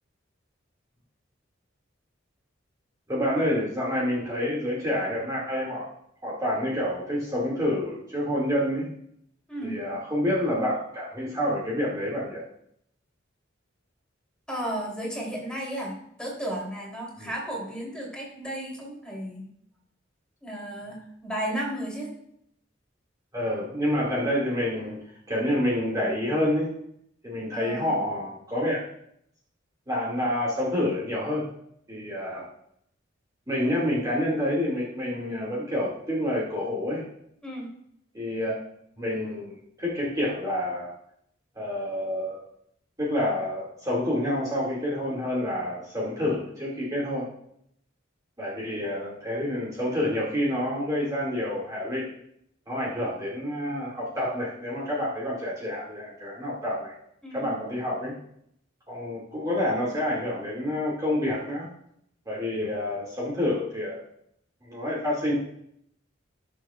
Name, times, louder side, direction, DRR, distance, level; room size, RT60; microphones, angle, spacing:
voice 1, 3.1-5.9 6.2-8.9 9.6-12.4 17.2-17.3 23.3-26.7 27.2-28.8 29.9-31.5 31.9-32.5 33.5-37.0 38.1-38.5 39.0-40.9 41.5-42.4 43.0-47.3 48.4-52.1 52.7-56.9 57.3-58.1 58.9-61.7 62.3-64.0 64.7-65.3, left 1 dB, 20° right, -6 dB, 2.3 m, -28 dB
voice 2, 9.5-9.8 14.5-19.5 20.4-22.1 27.5-28.1 37.4-37.7 57.2-57.6, right 1 dB, 5° left, -3 dB, 3.3 m, -34 dB
18.5 x 7.0 x 2.5 m, 0.72 s
head